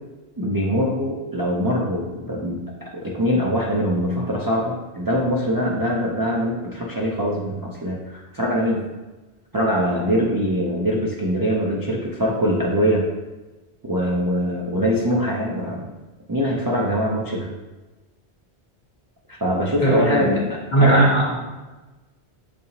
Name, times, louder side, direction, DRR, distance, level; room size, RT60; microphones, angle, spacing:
voice 1, 0.4-8.8 9.5-13.1 13.8-15.9 16.3-17.5 19.3-21.0, equal, 35° right, -3 dB, 0.3 m, -23 dB
voice 2, 19.8-20.4 20.7-21.4, right 1 dB, 45° left, -5 dB, 1.4 m, -18 dB
6.8 x 2.8 x 2.8 m, 1.2 s
omnidirectional pair, 1.1 m